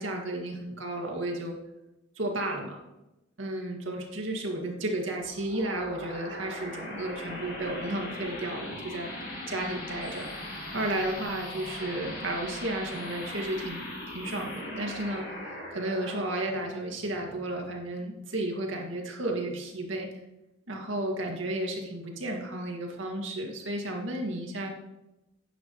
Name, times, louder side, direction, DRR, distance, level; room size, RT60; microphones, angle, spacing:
voice 1, 0.0-1.5 2.2-2.8 3.4-9.1 9.5-10.3 10.7-15.3 15.7-20.1 20.7-24.7, right 1 dB, 90° right, 1 dB, 2.0 m, -33 dB
sound 1, 5.2-18.3, left 1 dB, 50° left, 2.9 m, -40 dB
11.0 x 9.3 x 3.1 m, 0.95 s
head